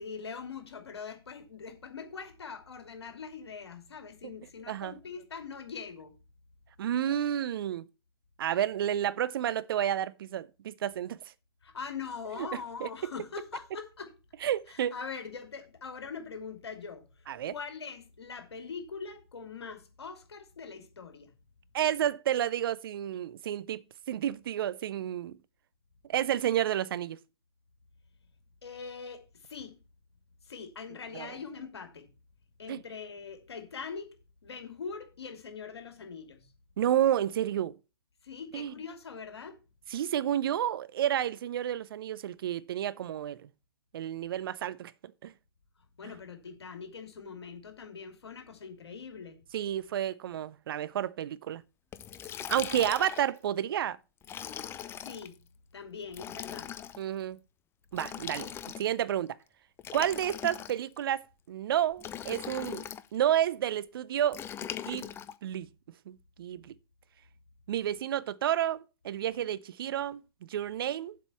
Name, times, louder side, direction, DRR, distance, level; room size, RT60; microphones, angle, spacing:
voice 1, 0.0-6.1 11.6-14.2 14.7-17.1 17.4-21.3 28.6-29.8 30.4-32.1 32.6-34.1 34.4-36.5 38.2-39.6 46.0-49.4 54.7-55.4 55.7-56.7, left 5 dB, 75° left, 2.5 m, -42 dB
voice 2, 6.8-7.8 8.4-11.2 12.4-12.9 14.4-14.9 17.3-17.5 21.7-23.8 24.1-25.4 26.1-27.2 31.1-31.3 32.7-32.8 36.8-37.8 38.5-38.7 39.9-43.4 43.9-44.9 45.2-45.3 49.5-51.6 52.5-54.0 57.0-57.4 57.9-59.4 59.9-61.2 61.5-62.8 63.1-64.4 64.9-65.1 65.4-65.7 66.1-66.7 67.7-68.8 69.0-70.2 70.5-71.2, right 11 dB, 60° right, 0.6 m, -30 dB
Liquid, 51.9-53.4 54.2-55.3 56.1-57.0 57.9-59.0 59.8-61.0 62.0-63.1 64.3-65.3, left 9 dB, 15° left, 0.6 m, -40 dB
7.7 x 5.2 x 7.1 m
hypercardioid pair, 120°, 14 cm